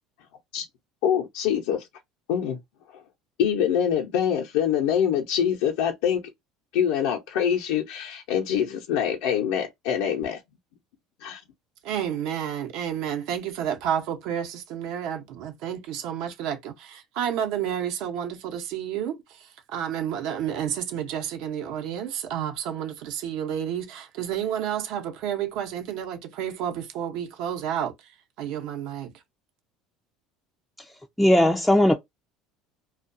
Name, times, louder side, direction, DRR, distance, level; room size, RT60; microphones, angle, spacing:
voice 1, 1.0-1.9 2.3-2.6 3.4-6.2 6.7-10.4 11.2-11.4, left 8 dB, 80° left, 0.7 m, -24 dB
voice 2, 11.8-29.1, right 9 dB, 65° right, 0.8 m, -30 dB
voice 3, 31.2-31.9, left 1 dB, ahead, 0.4 m, -18 dB
2.3 x 2.3 x 2.5 m
cardioid pair, 130°, 0 cm